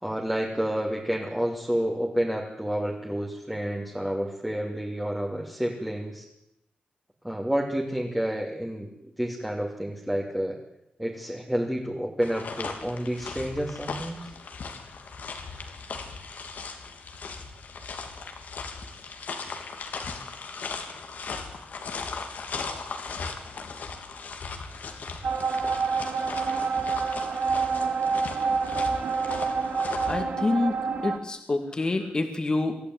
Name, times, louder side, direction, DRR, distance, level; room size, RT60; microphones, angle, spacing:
voice 1, 0.0-6.3 7.2-10.6 11.0-14.3, equal, 5° right, -2 dB, 2.9 m, -29 dB
sound 1, 12.2-30.2, left 4 dB, 70° left, 3.2 m, -38 dB
sound 2, 25.2-31.2, right 5 dB, 60° right, 2.2 m, -27 dB
voice 2, 30.1-32.8, left 2 dB, 30° left, 6 dB, 2.7 m, -27 dB
25.0 x 15.5 x 9.7 m, 0.81 s
wide cardioid pair, 150°, 3 cm